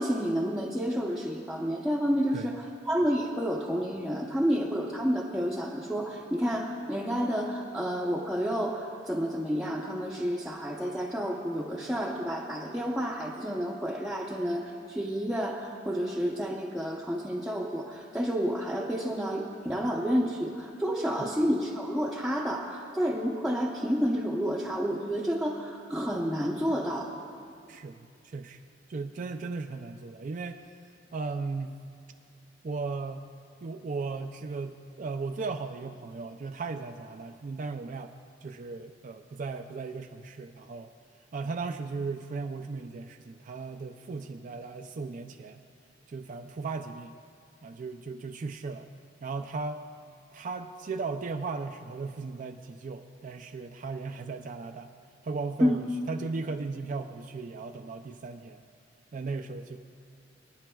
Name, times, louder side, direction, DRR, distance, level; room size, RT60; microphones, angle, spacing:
voice 1, 0.0-27.1 55.6-55.8, equal, 5° right, -5 dB, 0.7 m, -30 dB
voice 2, 27.7-28.6 28.9-30.6 31.1-31.8 32.6-33.3 33.6-38.1 38.4-40.9 41.3-45.6 46.1-47.2 47.6-48.9 49.2-49.8 50.3-54.9 55.2-58.6 59.1-59.8, right 4 dB, 45° right, 6 dB, 0.4 m, -36 dB
26.0 x 9.9 x 2.3 m, 2.4 s
head